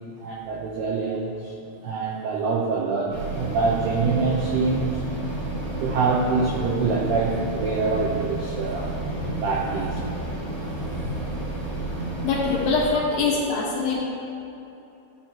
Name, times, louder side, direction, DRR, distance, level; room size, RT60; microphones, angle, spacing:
voice 1, 0.2-1.5 1.8-5.0 5.8-8.9 9.4-10.0 12.9-13.2 14.0-14.1, right 4 dB, 85° right, -2 dB, 2.3 m, -25 dB
sound 1, 3.1-12.9, right 2 dB, 50° right, 3.4 m, -31 dB
voice 2, 12.2-14.0, left 4 dB, 65° left, -5 dB, 3.2 m, -24 dB
16.0 x 8.8 x 3.0 m, 2.8 s
omnidirectional pair, 5.9 m